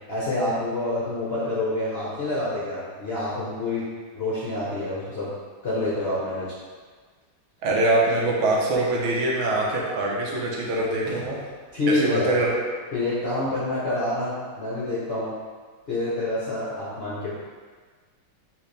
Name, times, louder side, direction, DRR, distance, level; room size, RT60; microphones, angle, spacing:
voice 1, 0.1-3.8 4.1-5.3 5.6-6.5 11.0-11.2 11.7-12.3 12.9-15.3 15.9-17.3, left 2 dB, 55° left, -9 dB, 0.6 m, -27 dB
voice 2, 7.6-11.4 11.9-12.6, right 2 dB, 90° right, -3 dB, 1.7 m, -23 dB
4.5 x 3.2 x 3.3 m, 1.5 s
omnidirectional pair, 2.2 m